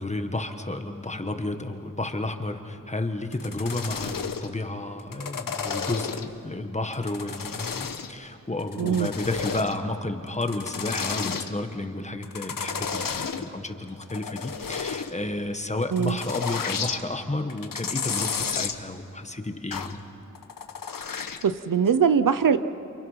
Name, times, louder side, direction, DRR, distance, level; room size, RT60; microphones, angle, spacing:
voice 1, 0.0-20.0, left 2 dB, 20° left, 6 dB, 1.5 m, -31 dB
sound 1, 3.3-4.5 5.0-6.4 6.9-8.2 8.6-9.8 10.3-11.5 12.2-13.5 13.9-15.1 15.8-17.0 17.5-18.8 19.7-20.0 20.4-21.5 21.9-22.0, left 6 dB, 80° left, 1.2 m, -32 dB
voice 2, 8.8-9.1 15.9-16.2 21.4-22.6, right 7 dB, 75° right, 12 dB, 0.8 m, -21 dB
29.0 x 28.5 x 5.8 m, 2.6 s
wide cardioid pair, 120°, 33 cm